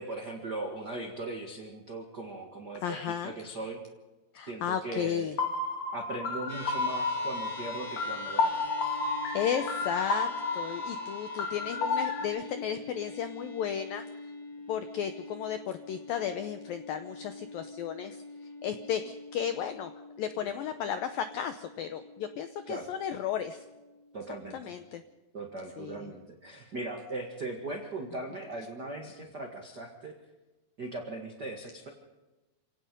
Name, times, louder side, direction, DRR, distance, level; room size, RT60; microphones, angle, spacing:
voice 1, 0.0-3.8 4.5-5.3 5.9-8.6 20.4-20.5 22.7-22.9 24.1-24.7 25.3-30.1 30.8-31.9, right 2 dB, 65° right, 2 dB, 1.0 m, -39 dB
voice 2, 2.8-3.3 4.3-5.4 9.3-14.0 14.7-18.2 18.6-19.9 20.2-23.6 24.5-25.0 25.8-26.1, left 9 dB, 85° left, 9 dB, 2.0 m, -34 dB
sound 1, 5.4-12.2, left 3 dB, 50° left, 2.5 m, -32 dB
sound 2, 6.5-25.0, left 2 dB, 30° left, 5.0 m, -46 dB
27.5 x 17.5 x 5.3 m, 1.1 s
omnidirectional pair, 5.3 m